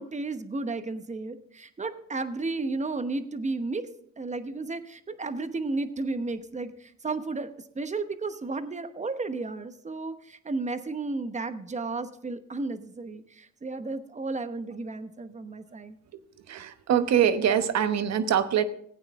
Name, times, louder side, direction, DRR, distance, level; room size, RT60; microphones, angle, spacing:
voice 1, 0.0-3.9 4.2-7.5 7.8-16.0, right 3 dB, 25° right, 10 dB, 1.0 m, -33 dB
voice 2, 16.5-18.6, right 9 dB, 60° right, 11 dB, 1.0 m, -24 dB
15.5 x 8.9 x 3.6 m, 0.65 s
cardioid pair, 90°, 30 cm